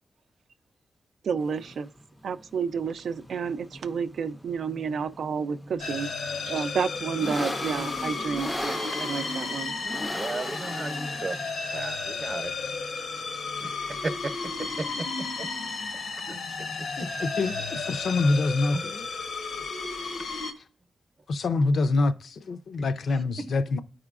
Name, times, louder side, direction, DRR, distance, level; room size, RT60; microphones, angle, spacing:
voice 1, 1.2-1.9 2.2-6.1 6.5-9.7, right 6 dB, 90° right, 0.4 m, -30 dB
sound 1, 1.3-19.3, equal, 5° left, 0.4 m, -40 dB
sound 2, 5.8-20.5, left 4 dB, 90° left, 0.8 m, -33 dB
voice 2, 10.1-11.4 11.7-12.5 13.6-14.3 14.6-14.9 15.4-15.5 16.3-16.4 17.0-17.1 18.7-18.8, right 3 dB, 40° right, 0.7 m, -34 dB
voice 3, 17.4-19.1 21.3-22.1 22.5-23.8, left 3 dB, 70° left, 0.4 m, -25 dB
13.5 x 4.9 x 2.4 m
wide cardioid pair, 160°, 0 cm